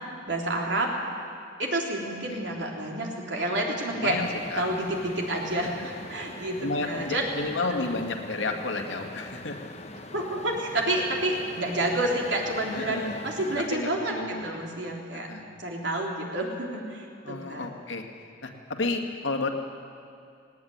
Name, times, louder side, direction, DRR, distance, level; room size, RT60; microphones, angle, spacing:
voice 1, 0.3-0.9 1.6-4.2 4.6-7.2 7.8-7.9 10.1-15.3 15.6-17.7, right 1 dB, 70° right, -1 dB, 3.7 m, -29 dB
voice 2, 3.9-4.6 5.6-5.7 6.6-9.7 12.7-13.1 13.6-14.5 15.3-15.5 17.2-18.0 18.4-19.5, left 3 dB, 80° left, 3 dB, 2.1 m, -31 dB
sound 1, 4.1-13.7, left 2 dB, 35° left, 1.2 m, -43 dB
19.0 x 17.5 x 9.6 m, 2.4 s
head